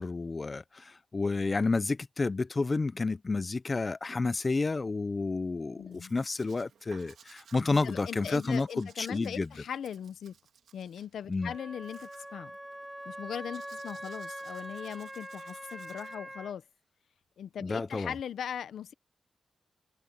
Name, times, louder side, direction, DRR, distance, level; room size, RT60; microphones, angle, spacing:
voice 1, 0.0-9.5 11.3-11.5 17.6-18.1, left 3 dB, 45° left, 0.9 m, -30 dB
voice 2, 5.8-6.1 7.8-10.3 10.7-12.5 13.0-16.6 17.4-18.9, left 8 dB, 90° left, 1.0 m, -39 dB
Domestic sounds home sounds, 5.9-16.1, right 7 dB, 85° right, 4.2 m, -59 dB
Wind instrument woodwind instrument, 11.4-16.5, right 1 dB, 10° right, 1.7 m, -43 dB
cardioid pair, 50°, 0 cm